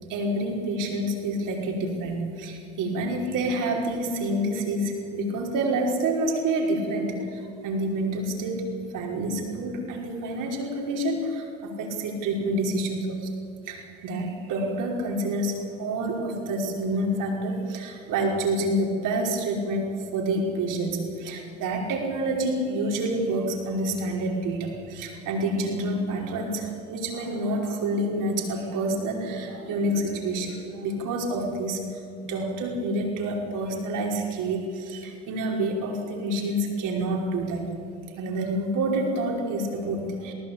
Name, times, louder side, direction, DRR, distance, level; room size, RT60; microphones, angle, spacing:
voice 1, 0.1-13.3 13.7-37.7 38.2-40.3, right 1 dB, 50° right, 0 dB, 5.3 m, -28 dB
22.0 x 18.5 x 8.7 m, 2.5 s
hypercardioid pair, 70°, 39 cm